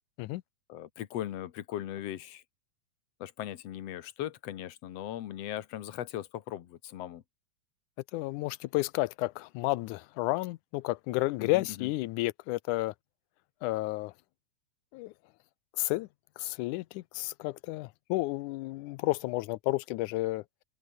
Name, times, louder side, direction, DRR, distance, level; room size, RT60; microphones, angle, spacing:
voice 1, 0.7-2.4 3.2-7.2 11.4-11.9, left 12 dB, 60° left, 2.2 m, -39 dB
voice 2, 8.1-12.9 13.6-14.1 14.9-15.1 15.8-16.1 16.4-20.4, left 19 dB, 85° left, 2.1 m, -31 dB
omnidirectional pair, 3.5 m